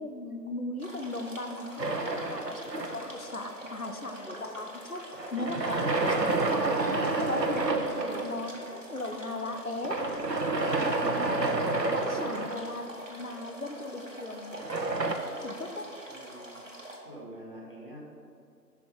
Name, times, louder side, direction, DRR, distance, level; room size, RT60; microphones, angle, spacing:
voice 1, 0.0-5.0 5.3-6.8 7.2-10.0 10.5-14.6 15.4-15.9, left 2 dB, 55° left, 6 dB, 0.9 m, -38 dB
sound 1, 0.8-17.0, right 1 dB, 50° right, 1.4 m, -44 dB
sound 2, 1.8-3.3 5.2-8.4 9.8-13.0 14.5-15.2, right 2 dB, 75° right, 1.1 m, -29 dB
voice 2, 16.1-16.7 17.0-18.0, right 1 dB, 30° left, -4 dB, 1.5 m, -46 dB
11.0 x 5.1 x 5.3 m, 2.3 s
figure-of-eight pair, 175°, 50 cm